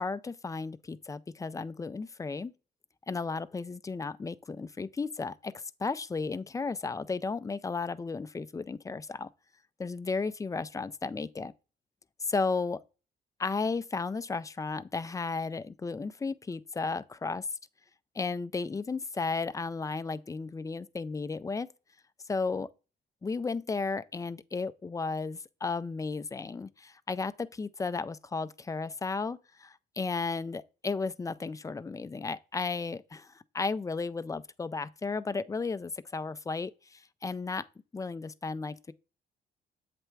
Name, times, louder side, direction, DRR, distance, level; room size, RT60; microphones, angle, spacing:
voice 1, 0.0-2.5 3.1-9.3 9.8-11.5 12.2-12.8 13.4-17.5 18.1-21.7 22.3-22.7 23.2-37.7 37.9-38.9, left 4 dB, 15° left, 0.4 m, -34 dB
7.8 x 3.4 x 4.5 m
cardioid pair, 90°, 20 cm